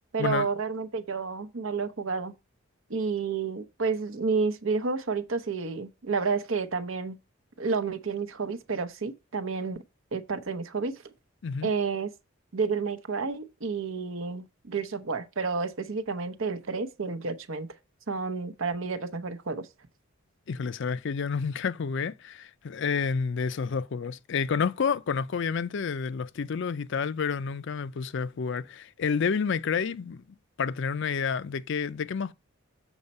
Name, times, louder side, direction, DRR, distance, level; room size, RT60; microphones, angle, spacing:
voice 1, 0.1-2.3 2.9-7.2 7.6-9.8 10.1-11.0 11.6-12.1 12.5-17.7 18.1-19.7, right 4 dB, 70° right, 0.8 m, -30 dB
voice 2, 20.5-30.2 30.6-32.3, left 6 dB, 60° left, 0.4 m, -29 dB
7.2 x 4.3 x 5.3 m
head